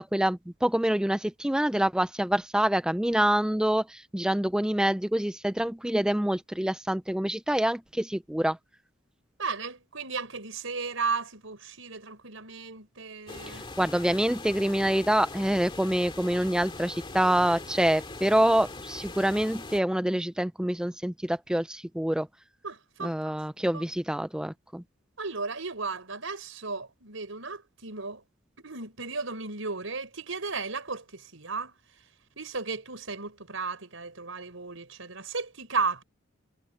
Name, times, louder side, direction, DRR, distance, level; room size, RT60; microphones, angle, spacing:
voice 1, 0.0-8.6 13.5-22.3 23.0-24.8, right 1 dB, 5° right, 0.3 m, -26 dB
voice 2, 9.4-13.6 22.6-23.8 25.2-28.2 28.6-31.8 32.4-36.0, right 4 dB, 75° right, 4.9 m, -35 dB
sound 1, 13.3-19.8, left 2 dB, 25° left, 2.3 m, -41 dB
head